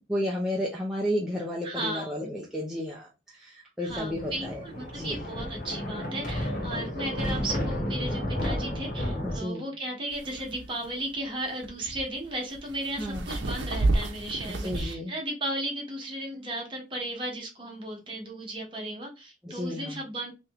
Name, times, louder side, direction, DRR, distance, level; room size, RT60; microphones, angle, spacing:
voice 1, 0.1-4.6 4.9-5.2 9.2-9.6 13.0-13.3 14.5-15.1 19.4-20.0, equal, 5° right, -4 dB, 0.6 m, -32 dB
voice 2, 1.6-2.2 3.8-20.3, right 1 dB, 30° right, -1 dB, 1.3 m, -35 dB
Thunder, 3.9-9.4, left 1 dB, 45° left, 0.9 m, -32 dB
sound 1, 10.1-14.9, right 2 dB, 70° right, 0.7 m, -31 dB
3.1 x 3.0 x 3.5 m, 0.27 s
head